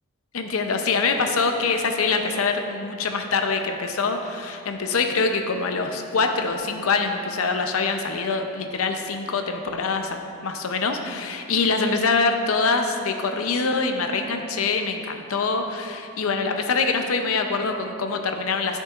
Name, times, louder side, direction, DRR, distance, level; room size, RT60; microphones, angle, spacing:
voice 1, 0.3-18.8, left 4 dB, 75° left, 5 dB, 0.6 m, -24 dB
11.0 x 6.6 x 2.5 m, 2.4 s
head